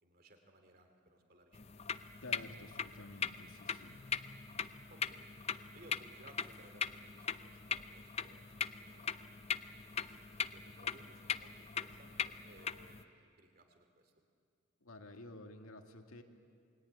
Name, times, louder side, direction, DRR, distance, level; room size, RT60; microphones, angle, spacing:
voice 1, 0.0-1.8 4.9-5.3 5.7-9.4 10.1-14.1, right 1 dB, 45° right, 5 dB, 2.7 m, -61 dB
sound 1, 1.5-13.0, left 6 dB, 30° left, 0.6 m, -41 dB
voice 2, 2.2-4.0 14.8-16.2, left 2 dB, 90° left, 4 dB, 2.2 m, -51 dB
28.0 x 21.5 x 9.5 m, 2.3 s
head